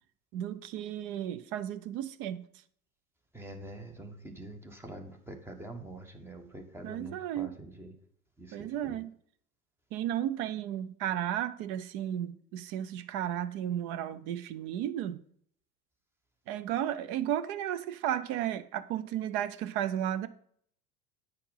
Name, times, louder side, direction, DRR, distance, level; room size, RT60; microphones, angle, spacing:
voice 1, 0.3-2.5 6.8-7.6 8.5-9.1 9.9-15.2 16.5-20.3, right 11 dB, 30° right, 0.4 m, -34 dB
voice 2, 3.3-7.9 8.4-9.0, right 1 dB, 5° right, 1.0 m, -45 dB
8.9 x 4.5 x 5.5 m
figure-of-eight pair, 80°, 47 cm